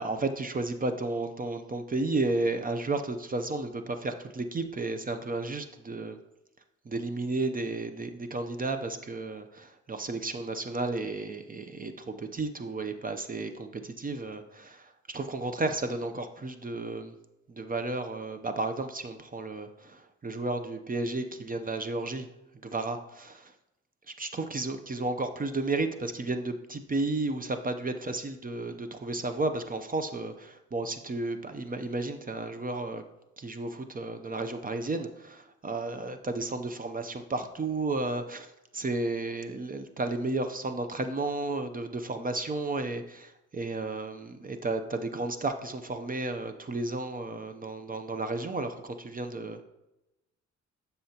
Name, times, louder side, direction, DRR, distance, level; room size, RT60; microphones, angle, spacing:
voice 1, 0.0-6.2 6.9-17.1 17.5-22.3 22.6-23.5 24.1-33.0 33.4-38.5 38.7-49.6, right 2 dB, 30° right, 8 dB, 0.7 m, -33 dB
11.5 x 5.6 x 2.9 m, 0.93 s
cardioid pair, 80°, 29 cm